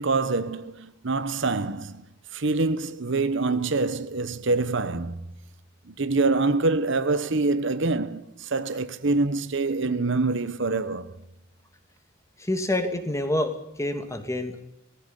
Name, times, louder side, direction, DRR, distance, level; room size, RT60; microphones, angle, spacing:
voice 1, 0.0-2.1 2.3-5.2 5.9-11.2, right 3 dB, 65° right, 1.0 m, -25 dB
voice 2, 12.4-13.5 13.8-14.6, left 1 dB, 15° left, 2.4 m, -27 dB
18.5 x 15.5 x 10.0 m
head